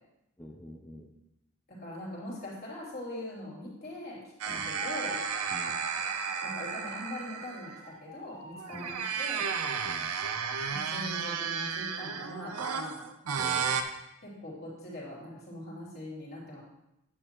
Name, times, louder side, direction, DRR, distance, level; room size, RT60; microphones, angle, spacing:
voice 1, 0.4-1.1 4.5-4.7 5.5-5.8 8.7-9.0 9.8-10.1 13.4-13.8, equal, 10° left, -3 dB, 0.6 m, -47 dB
voice 2, 1.7-5.2 6.4-9.5 10.7-13.0 14.2-16.6, left 1 dB, 45° left, -5 dB, 3.1 m, -42 dB
sound 1, 4.4-7.9 8.6-13.8, right 6 dB, 85° right, 0.7 m, -33 dB
sound 2, 4.7-6.5 7.8-8.8, left 2 dB, 65° left, 1.7 m, -46 dB
9.8 x 8.4 x 3.0 m, 0.88 s
head